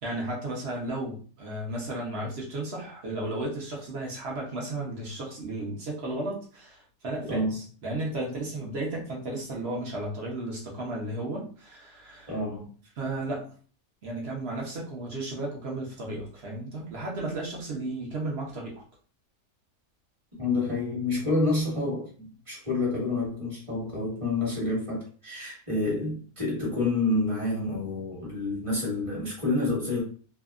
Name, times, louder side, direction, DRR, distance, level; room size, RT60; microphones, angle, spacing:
voice 1, 0.0-12.3 13.0-13.5 14.0-18.7, right 2 dB, 55° right, -2 dB, 0.8 m, -34 dB
voice 2, 12.3-12.7 20.4-30.0, left 2 dB, 20° right, -4 dB, 1.2 m, -28 dB
2.7 x 2.3 x 2.4 m, 0.40 s
omnidirectional pair, 1.6 m